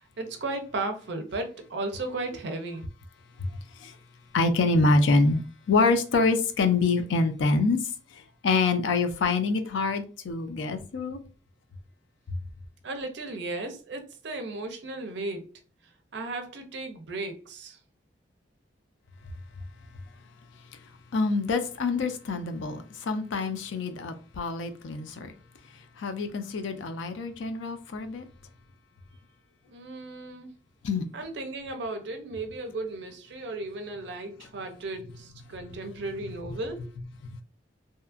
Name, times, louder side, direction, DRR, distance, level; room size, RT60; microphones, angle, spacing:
voice 1, 0.2-2.9 12.8-15.5 16.1-17.8 29.7-30.5 31.1-36.9, right 2 dB, 65° right, 0.5 m, -35 dB
voice 2, 4.3-7.8 8.4-11.2 21.1-25.3 26.0-28.3 30.8-31.0 35.7-35.8, left 3 dB, 80° left, 0.4 m, -26 dB
2.7 x 2.4 x 2.4 m
head